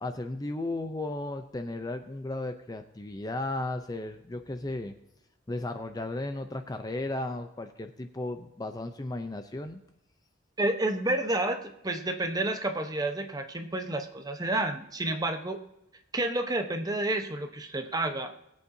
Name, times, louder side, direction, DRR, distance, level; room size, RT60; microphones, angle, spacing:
voice 1, 0.0-4.9 5.5-9.8, left 2 dB, 20° left, 7 dB, 0.6 m, -35 dB
voice 2, 10.6-15.6 16.1-18.3, right 2 dB, 20° right, 5 dB, 1.0 m, -30 dB
20.0 x 8.5 x 2.7 m, 0.86 s
head